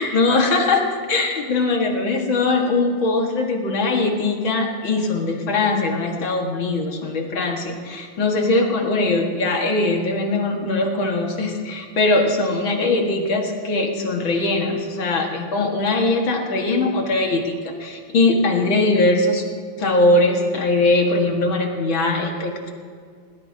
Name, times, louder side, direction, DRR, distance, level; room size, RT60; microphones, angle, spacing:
voice 1, 0.0-19.5 19.8-22.7, left 2 dB, 80° left, 1 dB, 2.5 m, -21 dB
20.0 x 19.0 x 2.8 m, 2.1 s
omnidirectional pair, 2.1 m